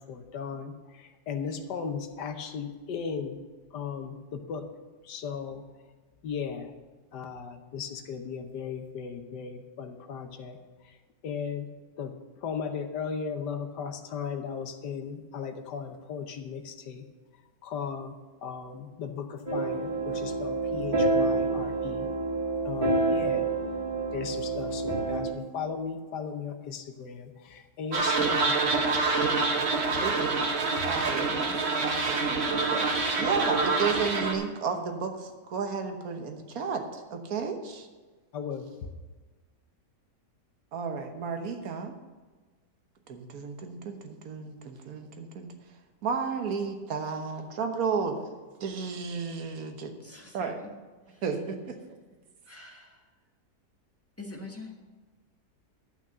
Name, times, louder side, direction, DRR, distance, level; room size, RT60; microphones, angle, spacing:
voice 1, 0.1-3.4 3.7-4.7 5.0-5.6 6.2-6.7 7.1-11.0 11.2-11.7 12.0-12.1 12.4-17.0 17.6-18.1 18.4-22.1 22.6-23.5 24.1-28.8 29.5-29.7 30.0-30.2 30.8-30.9 38.3-38.7, left 6 dB, 85° left, 1.6 m, -37 dB
sound 1, 19.5-25.3, right 3 dB, 30° right, 2.0 m, -28 dB
sound 2, 27.9-34.3, right 3 dB, 45° right, 1.2 m, -26 dB
voice 2, 30.5-32.9 33.2-37.9 40.7-41.9 43.1-45.5 46.0-48.2 48.6-49.9 50.3-50.6 51.2-51.8, right 5 dB, 60° right, 1.6 m, -33 dB
voice 3, 50.0-50.7 52.5-52.9 54.2-54.7, left 2 dB, 10° left, 1.5 m, -44 dB
11.5 x 6.1 x 6.7 m
omnidirectional pair, 1.8 m